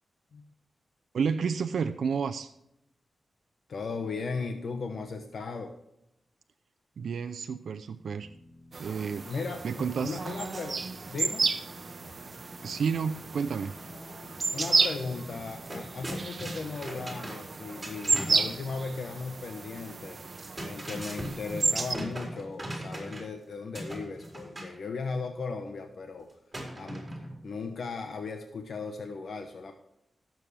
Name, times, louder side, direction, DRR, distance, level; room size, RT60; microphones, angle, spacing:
voice 1, 1.1-2.5 7.0-8.3 8.8-9.3 9.6-10.2 12.6-13.8, right 6 dB, 85° right, 8 dB, 0.6 m, -30 dB
voice 2, 3.7-5.7 9.2-10.8 11.1-11.5 14.5-20.2 20.6-26.3 26.7-27.1 27.4-29.7, left 4 dB, 70° left, 5 dB, 1.1 m, -37 dB
Keyboard (musical), 8.2-16.6, left 2 dB, 45° left, 1.4 m, -53 dB
sound 1, 8.7-22.0, right 4 dB, 45° right, 0.9 m, -32 dB
sound 2, 15.1-15.2 15.4-18.5 20.2-23.4 23.7-24.8 26.5-27.4, right 1 dB, 15° right, 4.4 m, -39 dB
17.5 x 7.5 x 3.4 m, 0.82 s
wide cardioid pair, 95°, 0 cm